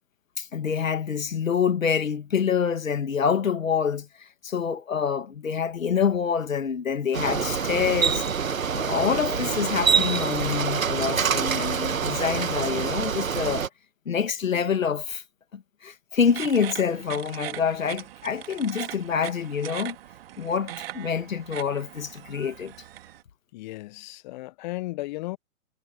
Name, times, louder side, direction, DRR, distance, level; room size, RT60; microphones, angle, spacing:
voice 1, 0.4-8.2 8.7-13.7 14.1-15.2 15.5-20.0 20.4-22.7, left 6 dB, 70° left, 2.2 m, -26 dB
Bicycle, 7.1-13.7, right 6 dB, 75° right, 1.9 m, -26 dB
sound 1, 16.3-23.2, right 13 dB, 45° right, 2.4 m, -40 dB
voice 2, 23.5-25.4, left 19 dB, 35° left, 1.4 m, -35 dB
figure-of-eight pair, 125°, 41 cm